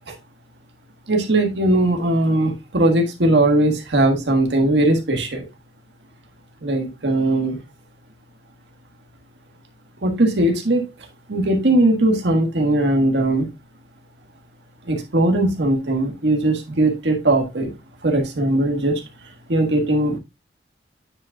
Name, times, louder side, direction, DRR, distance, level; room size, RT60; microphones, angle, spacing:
voice 1, 1.1-5.5 6.6-7.6 10.0-10.8 11.3-13.5 14.9-17.7 18.0-19.0 19.5-20.2, right 1 dB, 75° right, 3 dB, 1.5 m, -19 dB
9.4 x 5.1 x 2.3 m, 0.23 s
head